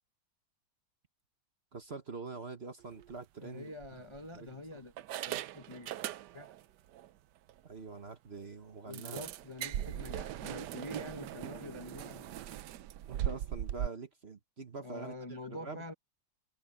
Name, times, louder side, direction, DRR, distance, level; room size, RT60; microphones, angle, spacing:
voice 1, 1.7-3.7 4.3-4.9 7.6-9.2 13.1-15.8, right 4 dB, 35° right, 1.2 m, -45 dB
sound 1, 2.9-3.1 3.8-4.5 5.0-6.6 6.9-7.1 7.5-7.6 7.9-8.0 8.9-13.9, right 12 dB, 70° right, 1.2 m, -39 dB
voice 2, 3.4-4.9 5.2-5.9 6.3-6.5 8.9-12.3 14.8-15.9, left 2 dB, 20° left, 0.7 m, -46 dB
omnidirectional pair, 2.1 m